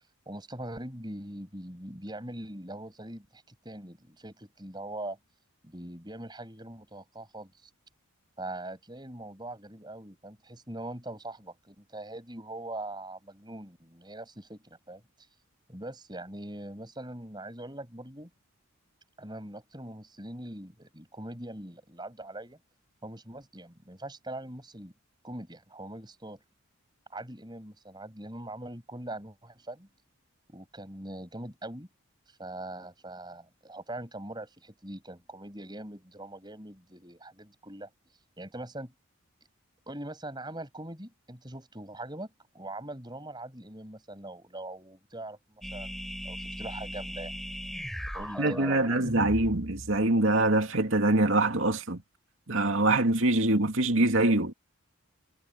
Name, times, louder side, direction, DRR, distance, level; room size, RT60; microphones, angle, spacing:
voice 1, 0.3-5.2 5.6-7.7 8.4-15.0 15.7-18.3 19.2-22.6 23.0-24.9 25.2-26.4 27.1-29.9 30.5-31.9 32.3-37.9 38.4-38.9 39.9-46.0 46.2-47.4 48.1-49.0, right 1 dB, 20° right, 6.9 m, -42 dB
sound 1, 45.6-50.2, equal, ahead, 6.7 m, -38 dB
voice 2, 48.4-52.0 52.5-54.5, right 2 dB, 60° right, 2.6 m, -24 dB
head